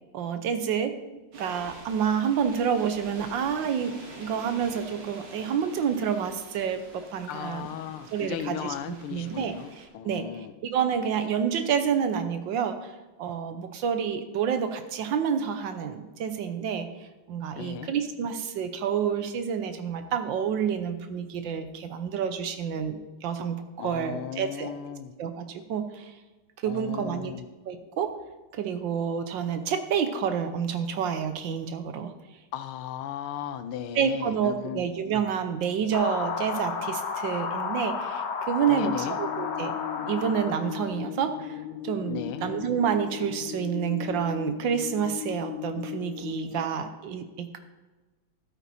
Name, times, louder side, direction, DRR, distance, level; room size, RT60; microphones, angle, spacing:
voice 1, 0.1-0.9 1.3-7.7 8.1-8.7 9.1-24.7 25.2-26.2 26.6-27.3 27.6-28.1 28.5-32.1 33.9-39.7 40.1-47.6, right 7 dB, 70° right, 9 dB, 1.4 m, -29 dB
sound 1, 1.3-9.9, right 2 dB, 85° right, 2.8 m, -46 dB
voice 2, 7.3-10.5 17.6-17.9 23.8-25.1 26.7-27.4 32.5-34.8 38.7-39.2 42.1-42.4, left 9 dB, 85° left, 11 dB, 1.6 m, -36 dB
sound 2, 35.9-41.0, left 5 dB, 55° left, 0.8 m, -32 dB
sound 3, 39.1-46.6, left 14 dB, 70° left, 1.2 m, -37 dB
12.5 x 8.9 x 4.1 m, 1.2 s
omnidirectional pair, 2.3 m